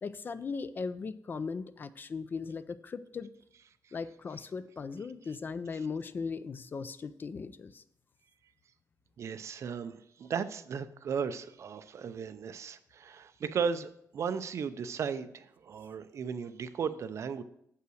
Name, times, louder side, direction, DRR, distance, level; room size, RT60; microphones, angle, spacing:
voice 1, 0.0-3.3 3.9-7.8, left 5 dB, 30° left, 14 dB, 0.4 m, -38 dB
voice 2, 9.2-17.4, right 6 dB, 50° right, 12 dB, 0.5 m, -36 dB
7.8 x 5.6 x 6.3 m, 0.72 s
wide cardioid pair, 170°, 6 cm